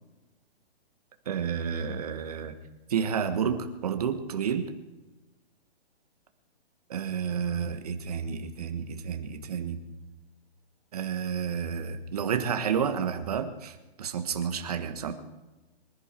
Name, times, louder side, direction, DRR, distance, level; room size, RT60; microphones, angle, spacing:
voice 1, 1.2-2.5 2.9-4.7 6.9-9.8 10.9-15.1, right 7 dB, 35° right, 7 dB, 1.4 m, -30 dB
24.5 x 11.0 x 4.5 m, 1.1 s
hypercardioid pair, 175°, 32 cm